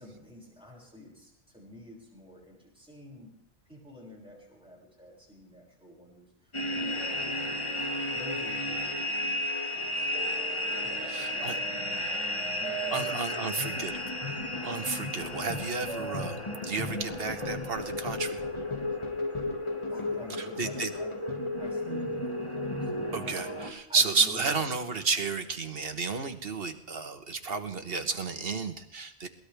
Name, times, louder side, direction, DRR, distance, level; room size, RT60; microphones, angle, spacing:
voice 1, 0.0-3.3 3.7-14.4 19.9-23.4 23.9-25.4, left 1 dB, 5° right, -4 dB, 6.2 m, -50 dB
sound 1, 6.5-23.7, left 1 dB, 25° left, 1.9 m, -33 dB
sound 2, 9.5-17.7, right 6 dB, 80° right, 2.1 m, -44 dB
voice 2, 11.1-11.6 12.9-13.9 14.6-16.4 16.6-18.4 20.6-20.9 23.1-29.3, right 4 dB, 60° right, 8 dB, 1.4 m, -31 dB
22.0 x 18.5 x 3.5 m, 0.76 s
omnidirectional pair, 1.1 m